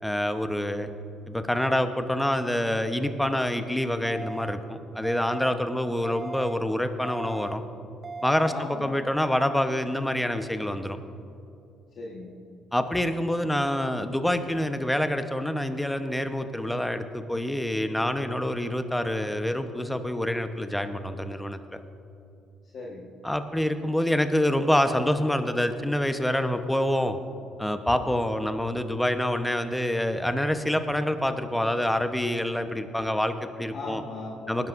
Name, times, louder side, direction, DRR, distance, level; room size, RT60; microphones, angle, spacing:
voice 1, 0.0-0.9 1.3-7.6 8.2-11.0 12.7-21.8 23.2-27.2 27.6-34.0 34.5-34.7, left 1 dB, 5° left, 8 dB, 1.0 m, -26 dB
sound 1, 4.0-4.5 5.0-5.5 6.0-6.5 7.0-7.5 8.0-8.5, right 3 dB, 35° right, 0.6 m, -37 dB
voice 2, 8.5-8.9 12.0-12.3 22.7-23.1 33.7-34.6, left 3 dB, 60° left, -3 dB, 1.5 m, -38 dB
19.5 x 11.0 x 2.6 m, 2.8 s
hypercardioid pair, 55°, 0 cm